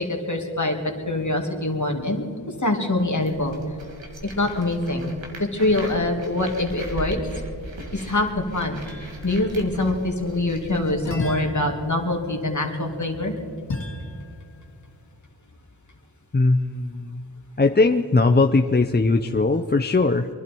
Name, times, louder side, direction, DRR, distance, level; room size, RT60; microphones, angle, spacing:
voice 1, 0.0-2.2 2.6-3.6 4.2-7.2 7.9-8.8 9.2-13.3, left 2 dB, 40° left, 2 dB, 2.5 m, -24 dB
sound 1, 3.2-11.4, right 1 dB, 85° right, 2.1 m, -39 dB
sound 2, 8.8-9.6 11.0-14.7, left 2 dB, 75° left, 2.1 m, -36 dB
voice 2, 16.3-17.2 17.6-20.3, left 3 dB, 25° left, 5 dB, 0.6 m, -19 dB
24.0 x 11.5 x 4.6 m, 2.3 s
wide cardioid pair, 60°, 44 cm